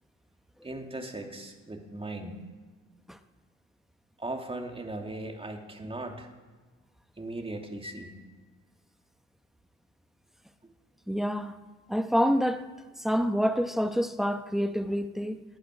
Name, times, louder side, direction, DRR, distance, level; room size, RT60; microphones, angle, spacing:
voice 1, 0.6-2.4 4.2-6.3 7.2-8.2, right 2 dB, 20° right, 2.4 m, -38 dB
voice 2, 11.1-11.5 11.9-12.6 13.0-15.4, equal, ahead, 1.0 m, -27 dB
19.0 x 10.0 x 6.3 m
cardioid pair, 90°, 30 cm